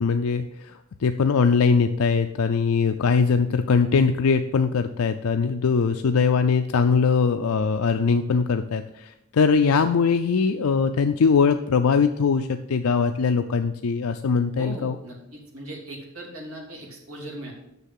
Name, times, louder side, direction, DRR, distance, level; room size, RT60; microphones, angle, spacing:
voice 1, 0.0-15.0, left 5 dB, 75° left, 7 dB, 0.5 m, -21 dB
voice 2, 14.6-17.5, right 1 dB, 85° right, -2 dB, 2.8 m, -38 dB
6.8 x 6.4 x 7.6 m, 0.86 s
head